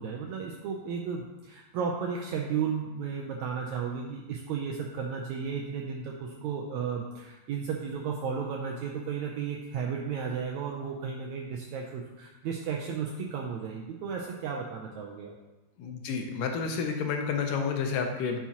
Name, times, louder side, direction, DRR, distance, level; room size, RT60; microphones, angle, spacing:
voice 1, 0.0-15.4, right 6 dB, 80° right, 0 dB, 1.6 m, -34 dB
voice 2, 15.8-18.4, left 5 dB, 80° left, 4 dB, 2.3 m, -30 dB
10.5 x 5.7 x 2.9 m, 1.1 s
omnidirectional pair, 3.9 m